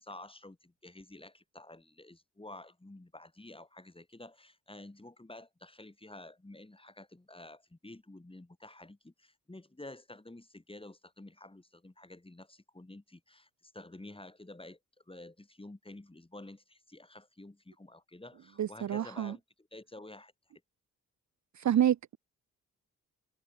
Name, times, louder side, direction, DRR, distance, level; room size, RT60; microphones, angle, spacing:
voice 1, 0.0-14.8 15.1-20.3, left 2 dB, 15° left, 6.1 m, -50 dB
voice 2, 18.6-19.3 21.6-22.2, right 10 dB, 50° right, 0.8 m, -27 dB
supercardioid pair, 55°, 36 cm